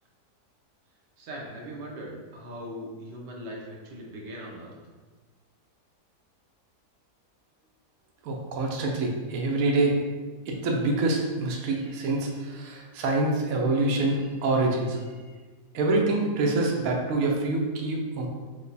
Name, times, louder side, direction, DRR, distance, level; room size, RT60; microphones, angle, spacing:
voice 1, 1.2-4.7, equal, 90° right, -2 dB, 1.4 m, -40 dB
voice 2, 8.2-10.0 10.5-15.0 15.7-18.3, right 2 dB, 65° right, 0 dB, 1.0 m, -26 dB
5.1 x 2.3 x 4.0 m, 1.4 s
omnidirectional pair, 1.8 m